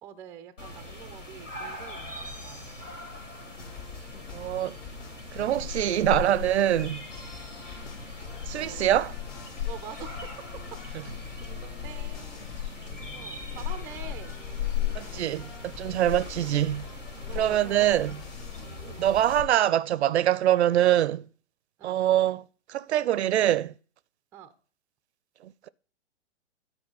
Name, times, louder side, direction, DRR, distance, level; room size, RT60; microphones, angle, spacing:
voice 1, 0.0-2.7 4.0-4.2 8.6-8.9 9.6-10.3 11.0-11.1 11.4-12.5 13.1-14.4 16.2-16.3 17.3-18.1 18.8-19.0 21.8-22.0 24.3-24.5, right 7 dB, 5° right, 0.3 m, -45 dB
sound 1, 0.6-19.4, left 7 dB, 85° left, 3.2 m, -38 dB
sound 2, 3.6-19.6, left 4 dB, 55° left, 2.1 m, -45 dB
voice 2, 4.3-4.8 5.3-7.0 8.4-9.1 14.9-16.8 17.3-18.2 19.0-21.2 21.8-23.7 25.4-25.7, right 12 dB, 65° right, 0.5 m, -24 dB
10.5 x 4.7 x 5.5 m
figure-of-eight pair, 115°, 37 cm